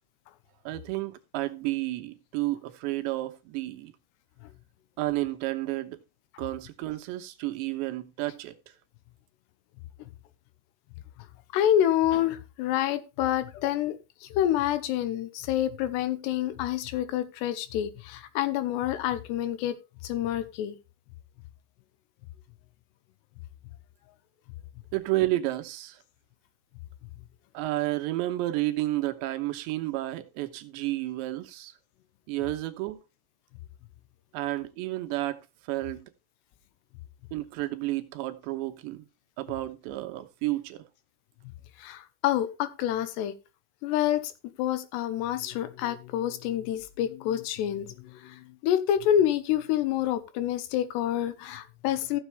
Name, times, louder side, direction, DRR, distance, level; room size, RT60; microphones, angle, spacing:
voice 1, 0.7-3.9 5.0-6.0 6.4-8.5 24.9-26.0 27.5-31.7 32.3-33.0 34.3-35.4 35.7-36.0 37.3-39.1 39.4-40.8, right 17 dB, 90° right, 3.2 m, -31 dB
voice 2, 11.5-19.7 20.0-20.7 41.8-43.3 43.8-44.3 44.6-52.2, left 11 dB, 80° left, 3.0 m, -28 dB
14.5 x 7.3 x 3.3 m
omnidirectional pair, 5.0 m